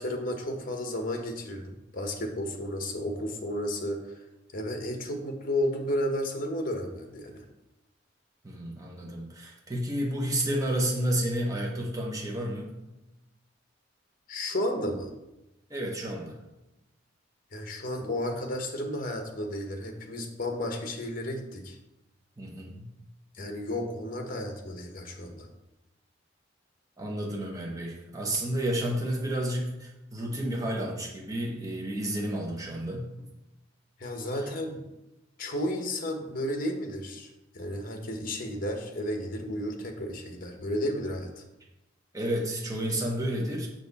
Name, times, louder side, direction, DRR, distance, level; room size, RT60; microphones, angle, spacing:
voice 1, 0.0-4.2 4.5-7.4 14.3-15.1 17.5-21.8 23.3-25.5 34.0-34.8 35.4-41.4, left 1 dB, 45° left, 4 dB, 1.1 m, -33 dB
voice 2, 8.4-12.7 15.7-16.4 22.4-22.9 27.0-33.3 42.1-43.7, right 1 dB, 20° right, -2 dB, 1.1 m, -31 dB
6.8 x 6.0 x 4.1 m, 0.96 s
head